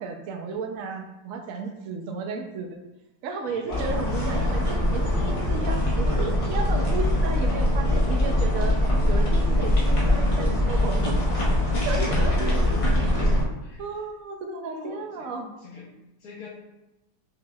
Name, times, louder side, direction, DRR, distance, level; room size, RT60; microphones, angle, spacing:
voice 1, 0.0-2.8 3.2-8.8 9.1-11.2 11.9-12.3 13.0-13.3 13.8-15.5, right 4 dB, 70° right, 4 dB, 0.8 m, -34 dB
voice 2, 3.5-4.1 11.9-13.1 13.6-13.8 14.6-15.3 15.6-15.9 16.2-16.5, left 2 dB, 65° left, -7 dB, 1.4 m, -41 dB
sound 1, 3.7-13.4, left 1 dB, 35° left, 0.5 m, -22 dB
5.9 x 2.9 x 2.3 m, 0.97 s
omnidirectional pair, 1.8 m